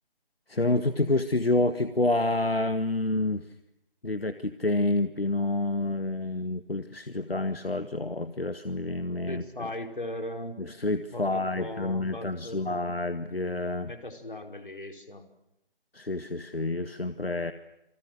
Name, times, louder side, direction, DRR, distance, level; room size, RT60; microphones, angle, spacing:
voice 1, 0.5-3.5 4.0-9.7 10.6-13.9 15.9-17.5, left 2 dB, 80° left, 11 dB, 1.8 m, -28 dB
voice 2, 9.3-10.6 11.1-12.8 13.8-15.2, left 1 dB, 60° left, 6 dB, 5.1 m, -38 dB
28.5 x 28.5 x 6.6 m, 0.86 s
figure-of-eight pair, 160°, 29 cm